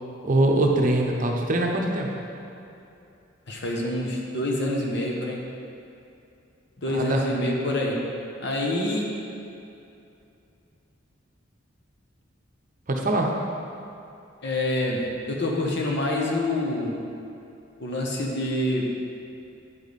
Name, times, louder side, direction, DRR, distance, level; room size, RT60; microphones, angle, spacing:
voice 1, 0.2-2.1 6.9-7.3 12.9-13.3, right 2 dB, 40° right, 0 dB, 0.7 m, -22 dB
voice 2, 3.5-5.4 6.8-8.0 8.4-9.1 14.4-16.9 17.8-18.9, left 1 dB, 60° left, -1 dB, 1.1 m, -26 dB
9.0 x 5.1 x 4.1 m, 2.7 s
head